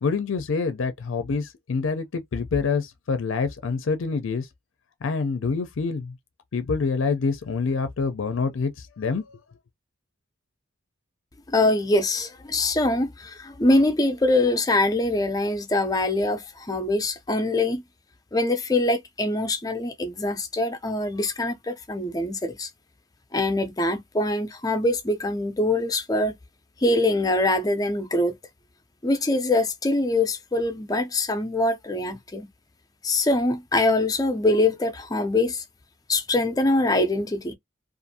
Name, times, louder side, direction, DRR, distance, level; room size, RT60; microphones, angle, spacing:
voice 1, 0.0-4.5 5.0-6.1 6.5-9.4, left 4 dB, 70° left, 0.5 m, -26 dB
voice 2, 11.5-17.8 18.3-22.7 23.3-26.3 26.8-28.4 29.0-32.5 33.0-35.6 36.1-37.5, left 2 dB, 20° left, 0.5 m, -23 dB
2.5 x 2.5 x 2.6 m
head